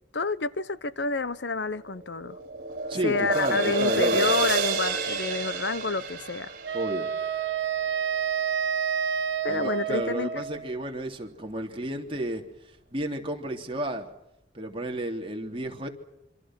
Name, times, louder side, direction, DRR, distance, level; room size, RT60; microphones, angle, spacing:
voice 1, 0.1-2.4 3.0-6.5 9.4-10.4, left 4 dB, 75° left, 1.0 m, -29 dB
sound 1, 1.7-8.1, right 4 dB, 55° right, 4.9 m, -29 dB
voice 2, 2.9-4.3 6.7-7.1 9.5-12.4 12.9-14.1 14.5-15.9, right 1 dB, 30° right, 3.3 m, -32 dB
Wind instrument woodwind instrument, 6.6-10.8, right 8 dB, 75° right, 1.9 m, -29 dB
27.0 x 26.5 x 6.1 m
head